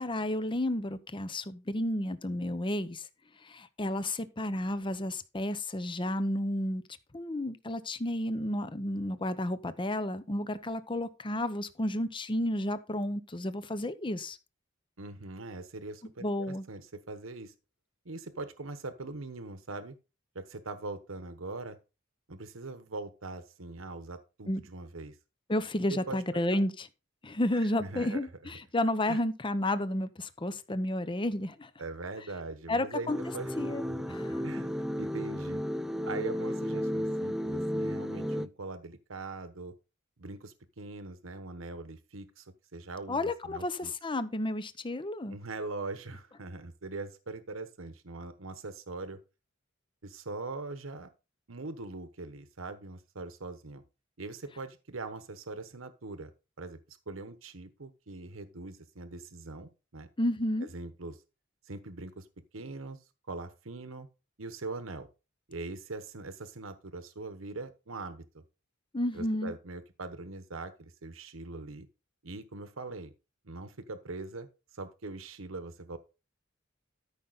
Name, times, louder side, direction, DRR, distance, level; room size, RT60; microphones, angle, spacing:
voice 1, 0.0-3.1 3.4-6.8 7.1-14.4 16.2-16.6 24.5-24.6 25.5-26.9 27.2-31.7 32.7-33.2 33.6-34.6 43.1-45.4 60.2-60.7 68.9-69.5, left 1 dB, 25° left, 0.8 m, -32 dB
voice 2, 15.0-17.5 18.0-19.9 20.3-21.8 22.3-25.2 25.9-26.6 27.6-28.2 29.1-29.2 31.8-33.5 33.8-33.9 34.3-35.6 36.0-39.7 40.2-43.9 45.3-49.2 50.0-51.1 51.5-53.8 54.2-56.3 56.6-60.1 60.6-61.2 61.6-62.3 62.5-63.0 63.3-64.1 64.4-65.1 65.5-68.4 69.1-71.9 72.2-73.1 73.4-76.0, right 3 dB, 75° right, 1.1 m, -42 dB
sound 1, 33.1-38.5, equal, ahead, 0.4 m, -33 dB
13.0 x 5.7 x 4.0 m
head